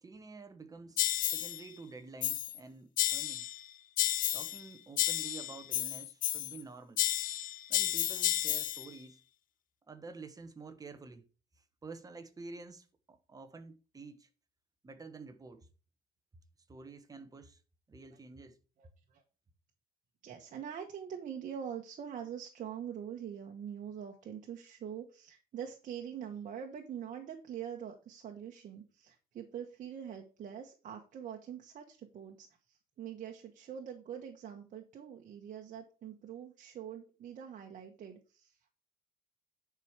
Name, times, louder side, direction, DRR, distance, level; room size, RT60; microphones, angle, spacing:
voice 1, 0.0-3.5 4.3-7.0 7.7-9.2 9.9-11.2 11.8-14.3 14.8-15.7 16.7-17.6 17.9-18.6, right 4 dB, 20° right, 1.2 m, -49 dB
sound 1, 1.0-1.6 2.2-2.6 3.0-3.6 4.0-4.6 5.0-6.6 7.0-8.9, left 12 dB, 55° left, 0.5 m, -32 dB
voice 2, 18.8-19.2 20.2-38.7, right 8 dB, 50° right, 1.3 m, -44 dB
10.5 x 4.9 x 4.7 m
cardioid pair, 110°, 17 cm